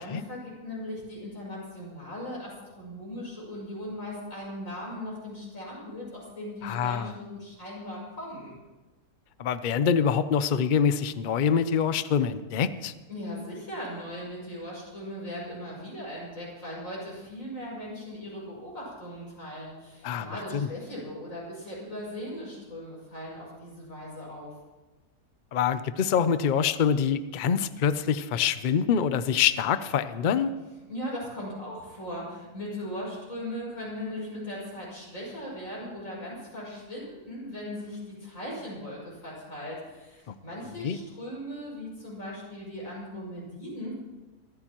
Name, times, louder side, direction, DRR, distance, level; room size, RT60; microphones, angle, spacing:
voice 1, 0.0-8.5 13.1-24.5 30.9-43.9, left 1 dB, 55° left, -5 dB, 6.8 m, -38 dB
voice 2, 6.6-7.1 9.4-12.9 20.0-20.7 25.5-30.5 40.8-41.0, left 7 dB, 85° left, 12 dB, 0.4 m, -25 dB
24.5 x 14.5 x 3.0 m, 1.2 s
omnidirectional pair, 1.7 m